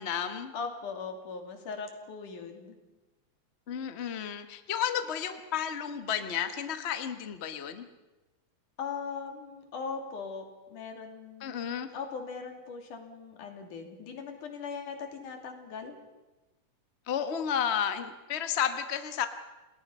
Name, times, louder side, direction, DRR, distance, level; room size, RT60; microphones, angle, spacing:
voice 1, 0.0-0.5 3.7-7.9 11.4-11.9 17.1-19.3, left 8 dB, 60° left, 8 dB, 0.6 m, -32 dB
voice 2, 0.5-2.7 8.8-11.6 11.9-15.9, left 5 dB, 85° left, 4 dB, 4.2 m, -39 dB
29.0 x 20.0 x 5.5 m, 1.1 s
omnidirectional pair, 3.5 m